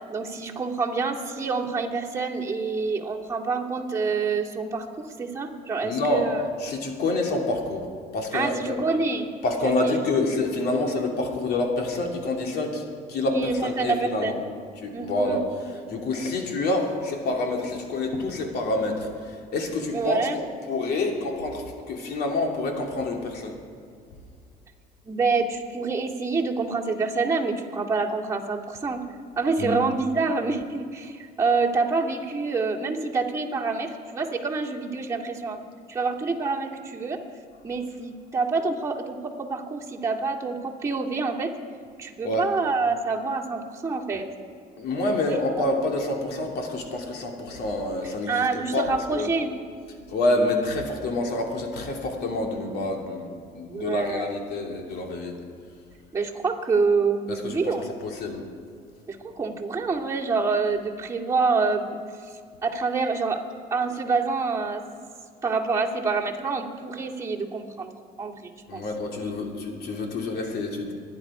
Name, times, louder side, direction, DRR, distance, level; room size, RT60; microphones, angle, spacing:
voice 1, 0.0-6.4 8.3-9.3 9.6-10.0 13.3-14.5 14.9-15.4 19.9-20.4 25.0-29.0 29.4-35.6 35.9-37.2 37.6-41.5 42.0-44.3 45.6-45.7 48.3-49.5 53.7-54.3 56.1-57.8 59.1-62.0 62.6-63.4 63.7-64.8 65.4-67.9 68.2-68.8, right 4 dB, 20° right, -3 dB, 2.2 m, -27 dB
voice 2, 5.8-6.3 6.6-7.9 8.1-8.8 9.4-14.3 14.8-15.5 15.7-23.6 29.6-29.8 42.2-42.5 44.8-48.4 48.7-49.3 50.1-55.3 57.3-57.7 58.0-58.4 68.7-70.9, left 2 dB, 70° left, 1 dB, 2.8 m, -27 dB
25.0 x 10.5 x 4.9 m, 2.1 s
cardioid pair, 110°, 17 cm